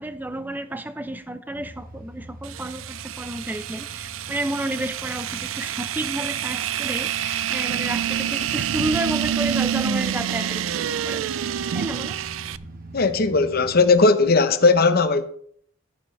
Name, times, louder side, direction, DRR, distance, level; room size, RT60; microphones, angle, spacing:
voice 1, 0.0-11.3 11.7-12.2, right 1 dB, 10° right, 0.6 m, -31 dB
sound 1, 1.5-13.9, right 2 dB, 45° right, 1.2 m, -44 dB
sound 2, 2.4-12.6, right 9 dB, 85° right, 0.4 m, -27 dB
voice 2, 12.9-15.3, left 3 dB, 50° left, 0.8 m, -18 dB
12.5 x 9.4 x 3.2 m
head